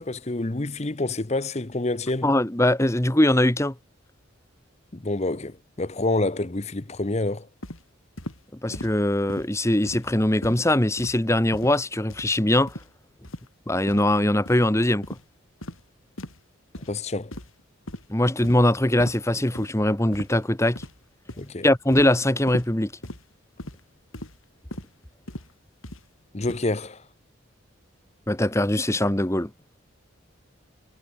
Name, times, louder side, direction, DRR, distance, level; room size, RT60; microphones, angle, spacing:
voice 1, 0.0-2.3 4.9-7.5 16.8-17.3 21.4-21.6 26.3-27.0, left 2 dB, 30° left, 0.9 m, -28 dB
voice 2, 2.2-3.7 8.6-12.7 13.7-15.0 18.1-20.8 21.6-22.9 28.3-29.5, left 1 dB, 15° left, 1.2 m, -21 dB
sound 1, 7.6-7.8 8.2-8.4 8.7-9.0 9.3-9.5 9.9-10.1 10.4-10.6 11.0-11.2 11.5-11.8 12.1-12.3 12.7-12.9 13.2-13.5 13.9-14.1 14.5-14.6 15.0-15.2 15.6-15.8 16.2-16.4 16.7-16.9 17.3-17.6 17.9-18.1 18.4-18.7 19.0-19.2 19.6-19.7 20.1-20.4 20.8-21.0 21.3-21.5 21.9-22.1 22.5-22.7 23.0-23.2 23.6-23.8 24.1-24.4 24.7-24.9 25.3-25.5 25.8-26.0 26.4-26.6, left 1 dB, 85° left, 6.2 m, -38 dB
head